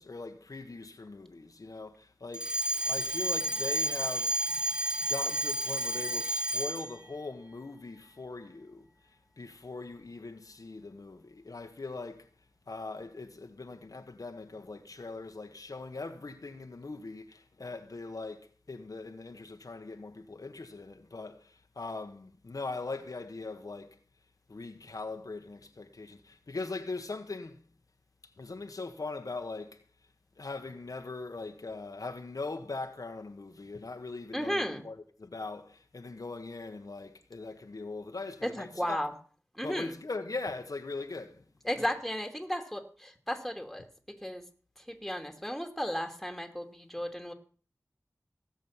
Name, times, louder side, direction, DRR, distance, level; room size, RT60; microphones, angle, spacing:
voice 1, 0.0-2.5 2.8-4.6 5.1-8.9 9.4-12.3 12.7-24.0 24.5-27.6 28.4-29.8 30.4-39.0 39.6-41.4 41.8-41.9, left 3 dB, 70° left, 1.4 m, -41 dB
Alarm, 2.3-7.0, right 1 dB, 15° right, 1.4 m, -31 dB
voice 2, 34.3-34.8 38.4-39.1 39.5-40.0 41.6-43.9 44.2-44.4 44.8-47.3, equal, ahead, 2.6 m, -34 dB
17.0 x 7.5 x 7.3 m
wide cardioid pair, 65°, 6 cm